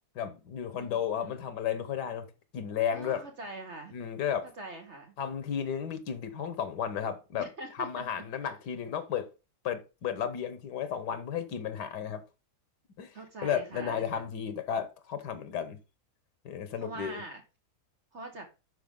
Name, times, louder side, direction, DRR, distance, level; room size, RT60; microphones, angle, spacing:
voice 1, 0.1-2.3 2.5-3.2 3.9-4.5 5.2-7.5 7.8-9.3 9.6-12.2 13.0-13.1 13.4-15.8 16.4-17.2, left 8 dB, 90° left, 1.7 m, -33 dB
voice 2, 0.8-1.3 2.9-4.0 4.6-5.1 7.4-8.5 13.1-14.2 16.8-17.4 18.1-18.5, right 2 dB, 45° right, 1.5 m, -43 dB
9.0 x 6.0 x 3.7 m
omnidirectional pair, 1.7 m